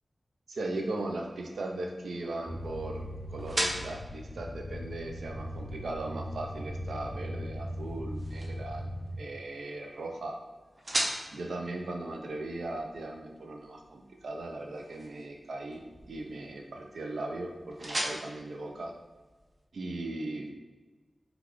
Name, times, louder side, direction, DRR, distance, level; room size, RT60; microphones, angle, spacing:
voice 1, 0.5-8.9 9.2-10.4 11.3-18.9 19.7-20.5, right 2 dB, 90° right, 2 dB, 0.4 m, -38 dB
sound 1, 0.8-19.7, right 1 dB, 45° right, 0.6 m, -41 dB
sound 2, 2.5-9.2, equal, 25° left, 0.5 m, -39 dB
3.8 x 2.3 x 3.0 m, 1.3 s
wide cardioid pair, 70°, 0 cm